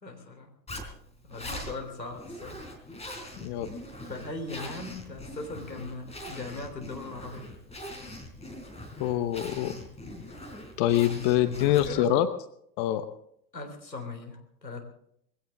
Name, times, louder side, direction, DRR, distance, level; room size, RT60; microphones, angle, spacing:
voice 1, 0.0-0.5 1.2-2.6 4.0-7.5 11.5-12.1 13.5-14.8, left 2 dB, 90° left, 4 dB, 3.8 m, -39 dB
Zipper (clothing), 0.7-12.1, left 1 dB, 15° left, 3.7 m, -42 dB
voice 2, 9.0-9.7 10.8-12.3 12.8-13.0, left 12 dB, 40° left, 11 dB, 1.1 m, -25 dB
21.5 x 16.5 x 3.7 m, 0.71 s
figure-of-eight pair, 90°, 49 cm